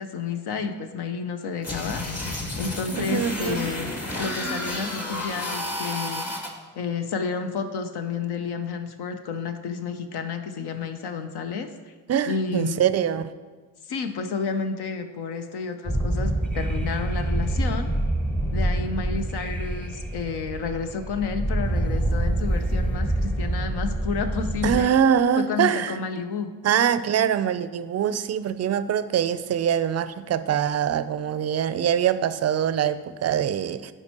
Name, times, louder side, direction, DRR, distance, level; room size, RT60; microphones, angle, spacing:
voice 1, 0.0-2.0 2.6-6.5 6.7-11.9 12.3-12.9 13.9-17.9 18.5-24.9 25.4-26.5, left 5 dB, 65° left, 7 dB, 0.7 m, -31 dB
sound 1, 1.6-6.5, left 1 dB, 35° left, 1.9 m, -31 dB
voice 2, 3.0-3.7 12.1-13.3 24.6-26.0 26.6-33.9, right 9 dB, 40° right, 14 dB, 0.4 m, -23 dB
sound 2, 15.9-24.8, right 1 dB, 5° left, 0.8 m, -26 dB
11.0 x 4.5 x 2.9 m, 1.4 s
supercardioid pair, 45°, 42 cm